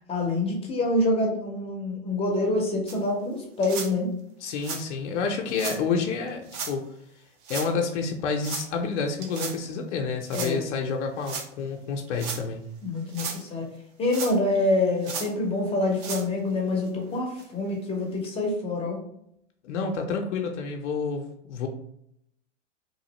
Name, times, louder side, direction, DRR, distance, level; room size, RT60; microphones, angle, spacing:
voice 1, 0.1-4.1 10.3-10.7 12.8-13.7 14.0-19.0, left 2 dB, 15° left, 1 dB, 0.6 m, -26 dB
sound 1, 2.9-3.0 3.6-3.9 4.6-4.8 5.5-5.8 6.5-6.7 7.4-7.7 8.4-8.7 9.2-9.6 10.3-10.5 11.2-11.5 12.1-12.4 13.0-13.4 14.1-14.6 15.0-15.3 15.9-16.3 16.9-17.0 17.4-17.5 18.2-18.3, right 5 dB, 35° right, 0.5 m, -34 dB
voice 2, 4.4-6.8 7.5-12.7 19.6-21.7, left 5 dB, 70° left, 2 dB, 0.6 m, -29 dB
3.0 x 2.5 x 2.9 m, 0.75 s
hypercardioid pair, 120°, 37 cm